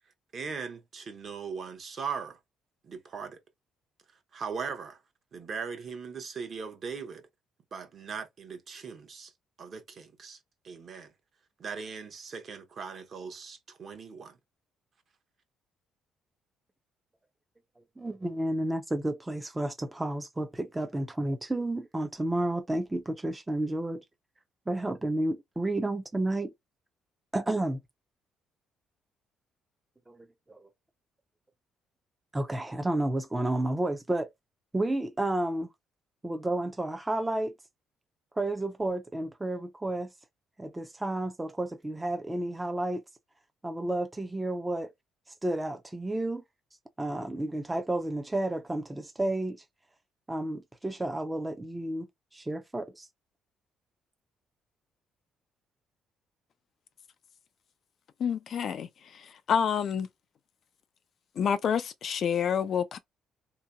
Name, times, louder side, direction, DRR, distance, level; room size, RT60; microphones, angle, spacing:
voice 1, 0.3-2.4 2.8-3.4 4.3-5.0 5.3-7.2 7.7-9.3 9.6-10.4 10.6-11.1 11.6-14.4, right 5 dB, 35° right, 0.8 m, -39 dB
voice 2, 17.8-24.0 24.7-26.5 27.3-27.8 30.1-30.7 32.3-34.3 34.7-35.7 36.2-37.5 38.4-40.1 40.6-43.0 43.6-44.9 45.4-46.4 47.0-49.6 50.3-52.1 52.3-53.1, right 1 dB, 10° right, 0.5 m, -31 dB
voice 3, 58.2-58.9 59.1-60.1 61.4-63.0, left 7 dB, 40° left, 0.3 m, -28 dB
3.7 x 2.8 x 2.2 m
cardioid pair, 170°, 0 cm